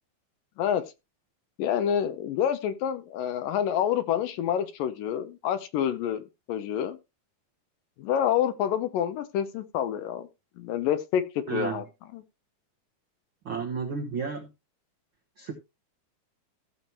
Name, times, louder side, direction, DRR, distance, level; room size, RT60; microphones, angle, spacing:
voice 1, 1.6-7.0 8.0-10.3 10.6-11.2 11.5-11.8 12.1-12.2, left 9 dB, 75° left, 2.3 m, -28 dB
voice 2, 11.5-11.8 13.4-14.5 15.4-15.5, right 5 dB, 75° right, 1.1 m, -32 dB
15.5 x 7.0 x 3.1 m
omnidirectional pair, 4.3 m